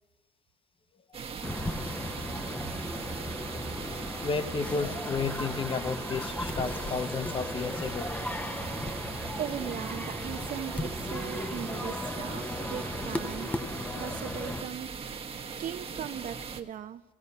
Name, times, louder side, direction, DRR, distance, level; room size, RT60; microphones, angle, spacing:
sound 1, 1.1-16.6, right 5 dB, 35° right, 1.3 m, -40 dB
sound 2, 1.4-14.6, left 1 dB, 10° left, 0.8 m, -36 dB
voice 1, 4.2-8.1, left 5 dB, 30° left, 12 dB, 1.0 m, -32 dB
voice 2, 9.0-13.7 14.0-15.2 15.6-17.0, right 9 dB, 55° right, 10 dB, 0.9 m, -39 dB
16.5 x 14.5 x 5.5 m, 1.2 s
cardioid pair, 110°, 17 cm